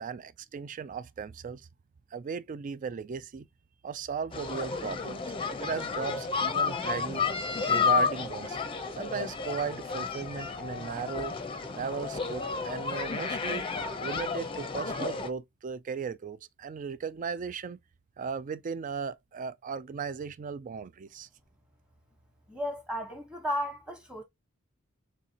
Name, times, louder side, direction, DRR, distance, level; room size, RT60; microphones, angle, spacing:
voice 1, 0.0-1.7 2.1-3.5 3.8-5.2 5.6-7.2 7.7-8.6 9.0-11.3 11.7-13.7 14.0-17.8 18.2-21.3, right 6 dB, 40° right, 0.3 m, -36 dB
sound 1, 4.3-15.3, left 5 dB, 25° left, 0.6 m, -31 dB
voice 2, 22.5-24.2, equal, 5° right, 1.3 m, -34 dB
4.2 x 3.1 x 2.9 m
head